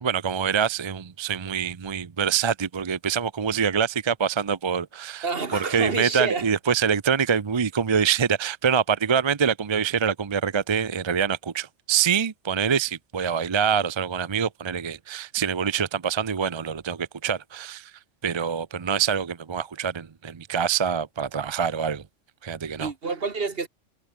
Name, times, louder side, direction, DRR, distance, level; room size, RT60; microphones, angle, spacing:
voice 1, 0.0-17.9 18.2-22.0 22.4-22.9, right 7 dB, 35° right, 0.5 m, -25 dB
voice 2, 5.2-6.5 22.8-23.7, right 4 dB, 50° right, 2.0 m, -28 dB
omnidirectional pair, 1.3 m